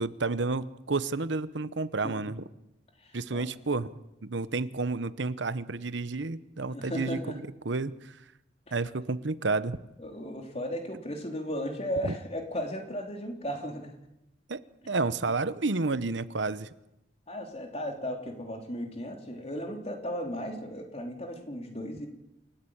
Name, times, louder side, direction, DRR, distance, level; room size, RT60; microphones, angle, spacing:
voice 1, 0.0-2.4 3.1-3.9 4.2-7.2 7.6-8.2 8.7-9.8 12.0-12.1 14.5-14.6 14.9-16.7, right 3 dB, 70° right, 14 dB, 0.9 m, -30 dB
voice 2, 3.0-3.4 6.7-7.4 8.7-8.8 10.0-13.9 17.3-22.1, equal, 35° left, 3 dB, 3.4 m, -35 dB
28.0 x 14.5 x 8.8 m, 0.89 s
head